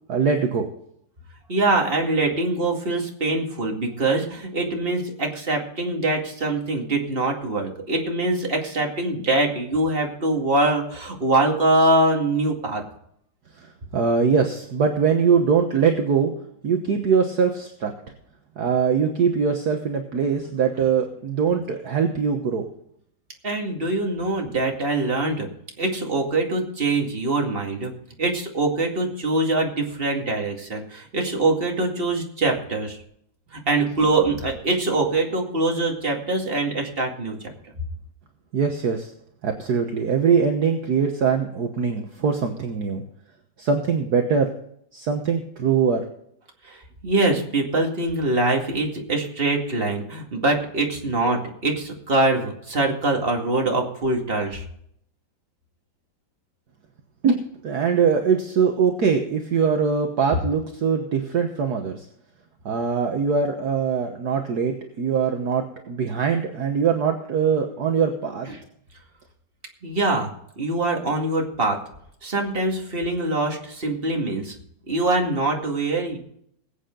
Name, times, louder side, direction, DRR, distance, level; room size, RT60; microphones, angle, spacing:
voice 1, 0.1-0.7 13.6-13.7 13.9-16.3 16.6-17.9 18.6-22.7 38.5-39.1 39.4-43.0 43.6-44.5 44.9-46.0 57.2-57.4 57.6-62.0 62.6-68.5, right 6 dB, 55° right, 4 dB, 1.6 m, -22 dB
voice 2, 1.5-12.8 23.4-25.5 25.8-27.9 28.2-33.0 33.5-37.5 46.6-54.6 68.5-68.6 69.8-71.8 72.2-74.6 74.9-76.2, right 2 dB, 30° right, 1 dB, 2.4 m, -23 dB
21.0 x 8.5 x 3.9 m, 0.69 s
omnidirectional pair, 2.1 m